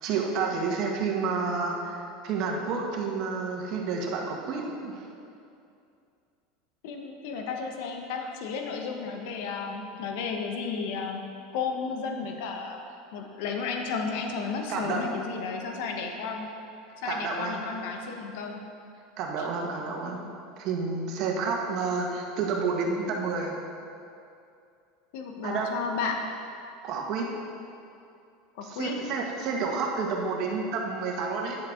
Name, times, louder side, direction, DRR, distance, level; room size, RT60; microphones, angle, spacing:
voice 1, 0.0-5.0 14.7-15.0 17.0-17.7 19.2-20.3 20.6-23.5 25.4-25.7 26.8-27.3 28.6-31.6, right 4 dB, 55° right, 0 dB, 1.5 m, -30 dB
voice 2, 6.8-11.2 11.5-12.8 13.1-16.5 17.0-18.7 19.4-19.5 25.1-26.2 28.5-29.0, left 5 dB, 70° left, 3 dB, 1.1 m, -33 dB
10.5 x 7.7 x 3.8 m, 2.5 s
supercardioid pair, 115°, 0 cm